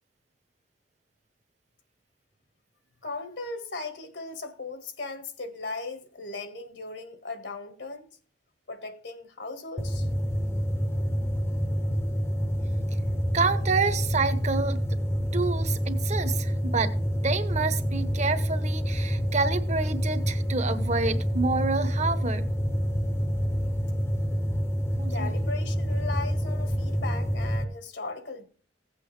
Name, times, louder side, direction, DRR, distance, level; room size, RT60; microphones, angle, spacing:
voice 1, 3.0-8.2 8.7-10.1 25.1-28.5, left 3 dB, 75° left, 1.7 m, -37 dB
sound 1, 9.8-27.6, equal, 15° left, 0.7 m, -27 dB
voice 2, 13.3-14.8 15.3-17.0 17.2-22.5 25.0-25.3, right 4 dB, 40° right, 1.0 m, -28 dB
16.0 x 8.3 x 3.3 m
head